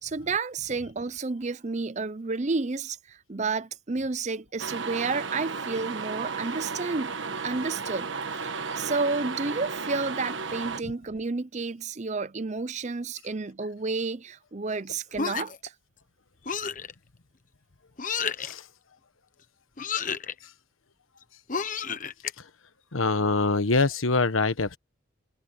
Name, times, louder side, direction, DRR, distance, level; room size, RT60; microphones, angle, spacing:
voice 1, 0.0-7.1 7.4-8.1 8.4-15.7, right 4 dB, 35° right, 0.6 m, -31 dB
sound 1, 4.6-10.8, right 5 dB, 70° right, 1.4 m, -34 dB
sound 2, 15.2-15.7 16.5-16.9 18.0-18.5 19.8-20.3 21.5-22.3, left 6 dB, 40° left, 1.0 m, -31 dB
voice 2, 22.9-24.8, left 3 dB, 85° left, 1.3 m, -24 dB
head